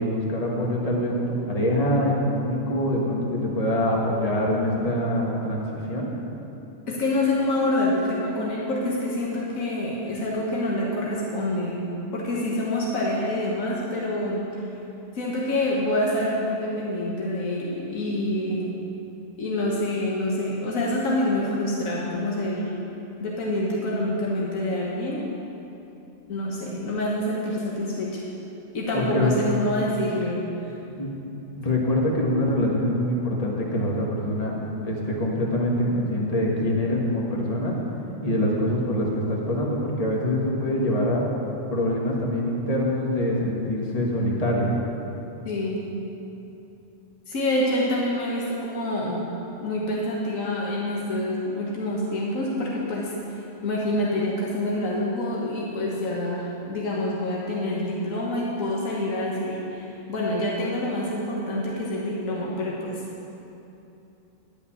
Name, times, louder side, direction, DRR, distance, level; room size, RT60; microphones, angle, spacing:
voice 1, 0.0-6.1 28.9-29.3 31.0-31.1 31.6-34.6 34.8-37.8 38.2-41.2 41.7-44.7, left 1 dB, 30° left, -2 dB, 1.4 m, -24 dB
voice 2, 6.9-11.8 12.1-14.7 15.1-18.7 19.4-22.7 23.2-25.2 26.3-28.2 28.7-30.7 45.4-45.8 47.3-49.3 49.6-53.1 53.6-63.0, left 1 dB, 85° left, -4 dB, 1.6 m, -26 dB
11.5 x 5.3 x 8.6 m, 2.9 s
omnidirectional pair, 1.4 m